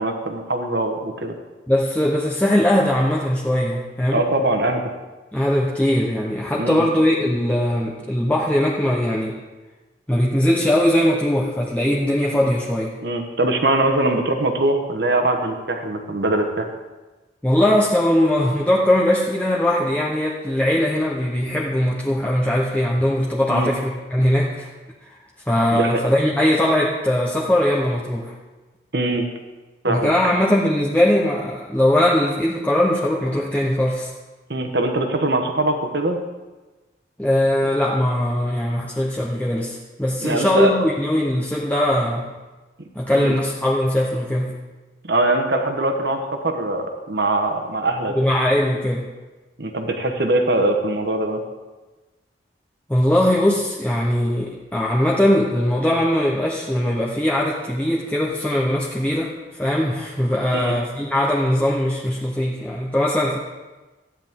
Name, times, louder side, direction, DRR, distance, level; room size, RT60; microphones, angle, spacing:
voice 1, 0.0-1.3 4.1-4.8 6.6-6.8 13.0-16.7 23.5-23.7 25.7-26.0 28.9-29.2 29.8-30.1 34.5-36.2 40.2-40.7 43.1-43.4 45.1-48.2 49.6-51.4 60.5-60.8, right 2 dB, 65° right, 4 dB, 1.3 m, -22 dB
voice 2, 1.7-4.3 5.3-9.4 10.1-12.9 17.4-24.7 25.0-25.2 25.5-28.3 29.8-34.1 37.2-42.3 42.9-44.6 48.1-49.1 52.9-63.4, left 1 dB, 10° left, -4 dB, 0.8 m, -20 dB
14.0 x 9.9 x 3.7 m, 1.2 s
head